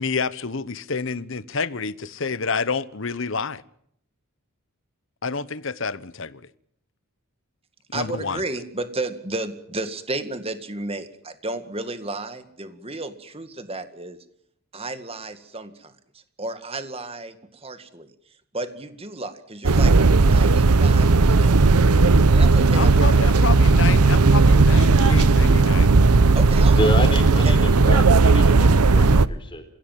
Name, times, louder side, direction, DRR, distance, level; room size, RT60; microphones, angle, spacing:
voice 1, 0.0-3.6 5.2-6.4 7.9-8.4 22.7-25.9, left 4 dB, 55° left, 1.0 m, -28 dB
voice 2, 7.9-14.2 14.7-15.9 16.4-18.1 18.5-23.1 23.3-23.4 26.3-26.8 27.4-27.7, right 2 dB, 25° right, 2.0 m, -33 dB
sound 1, 19.6-29.3, right 3 dB, 90° right, 0.9 m, -15 dB
voice 3, 26.8-29.6, left 1 dB, 20° left, 4.1 m, -28 dB
28.0 x 16.5 x 7.5 m
head